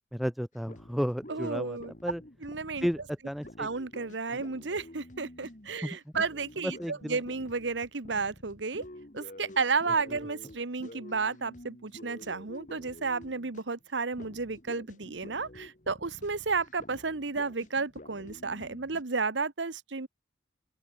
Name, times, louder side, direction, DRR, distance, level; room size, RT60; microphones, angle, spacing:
voice 1, 0.1-2.2 2.8-3.7 5.8-6.0 6.6-7.2 10.1-10.2, equal, ahead, 0.9 m, -33 dB
sound 1, 0.6-13.8 14.1-19.0, left 1 dB, 45° left, 2.5 m, -49 dB
voice 2, 1.3-1.9 2.4-2.9 3.6-8.8 9.1-20.1, right 4 dB, 85° right, 1.2 m, -32 dB
open air
head